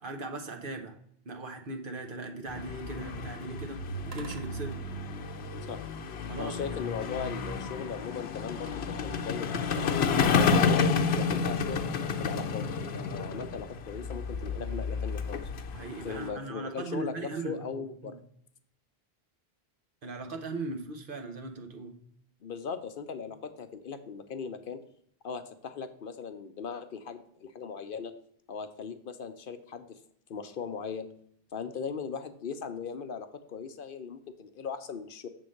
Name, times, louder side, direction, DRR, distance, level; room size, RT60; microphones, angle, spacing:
voice 1, 0.0-0.9 1.2-4.8 6.2-6.7 14.6-14.8 15.7-18.2 20.0-22.0, right 2 dB, 60° right, 4 dB, 1.1 m, -39 dB
sound 1, 2.5-16.3, left 5 dB, 90° left, 1.0 m, -30 dB
Metal straightedge (trembling - vibrating), 4.1-5.4 6.6-7.4 8.6-9.5, right 3 dB, 80° right, 1.2 m, -50 dB
voice 2, 6.4-11.8 12.2-15.4 16.0-18.2 22.4-24.8 25.2-28.1 28.5-30.0 30.3-31.1 31.5-35.3, left 6 dB, 65° left, 9 dB, 0.8 m, -38 dB
6.9 x 3.8 x 6.4 m, 0.67 s
omnidirectional pair, 1.0 m